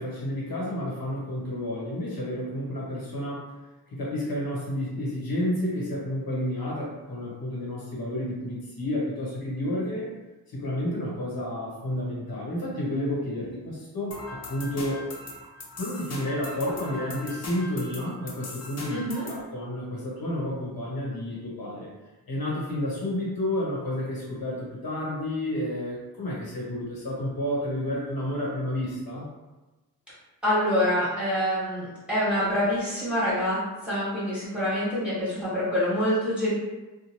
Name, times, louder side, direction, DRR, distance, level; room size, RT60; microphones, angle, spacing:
voice 1, 0.0-3.5 3.9-10.1 10.5-15.0 15.8-19.0 19.3-21.9 22.3-29.3, left 1 dB, 70° left, -5 dB, 1.1 m, -30 dB
sound 1, 14.1-19.4, left 1 dB, 45° left, 0.6 m, -40 dB
voice 2, 18.9-19.3 30.4-36.5, equal, 5° right, -11 dB, 1.3 m, -26 dB
2.7 x 2.1 x 3.0 m, 1.1 s
cardioid pair, 75°, 37 cm